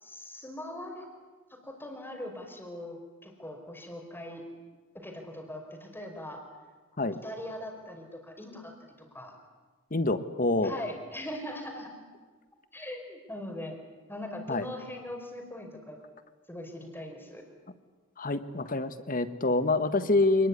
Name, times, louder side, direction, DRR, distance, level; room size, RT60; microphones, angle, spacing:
voice 1, 0.0-1.1 1.6-3.0 3.2-4.4 4.9-6.4 7.2-8.7 9.1-9.3 10.6-11.9 12.7-13.8 14.1-16.0 16.5-17.4, left 1 dB, 10° left, 3 dB, 4.9 m, -40 dB
voice 2, 9.9-10.8 14.5-14.6 18.2-20.5, left 2 dB, 45° left, 12 dB, 1.5 m, -26 dB
27.5 x 20.5 x 9.7 m, 1.4 s
head